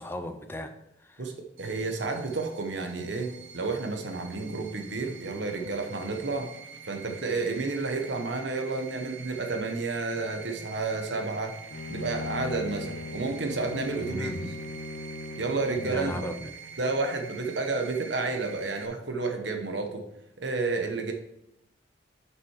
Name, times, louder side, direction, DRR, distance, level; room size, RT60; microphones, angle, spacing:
voice 1, 0.0-1.2 14.0-14.5 15.8-16.5, left 1 dB, 10° left, 8 dB, 0.5 m, -36 dB
voice 2, 1.2-6.5 6.8-11.6 11.9-14.3 15.4-16.2 16.8-20.0 20.4-21.1, right 3 dB, 65° right, 4 dB, 1.0 m, -31 dB
sound 1, 1.6-18.9, right 6 dB, 90° right, 0.7 m, -46 dB
Bowed string instrument, 11.7-16.5, left 3 dB, 60° left, 0.5 m, -39 dB
6.5 x 5.9 x 4.7 m, 0.82 s
head